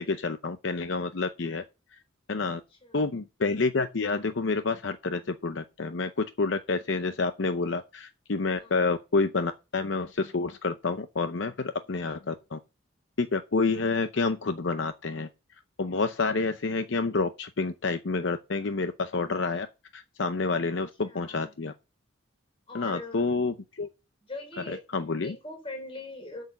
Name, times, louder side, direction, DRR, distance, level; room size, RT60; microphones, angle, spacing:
voice 1, 0.0-1.6 2.3-2.6 2.9-12.6 13.2-15.3 15.8-19.7 19.9-21.7 22.7-23.9 24.9-25.3, left 3 dB, 70° left, 0.7 m, -28 dB
voice 2, 21.0-21.5 22.7-23.2 24.2-24.8 25.2-26.4, left 2 dB, 30° left, 3.7 m, -41 dB
8.1 x 6.5 x 7.0 m
head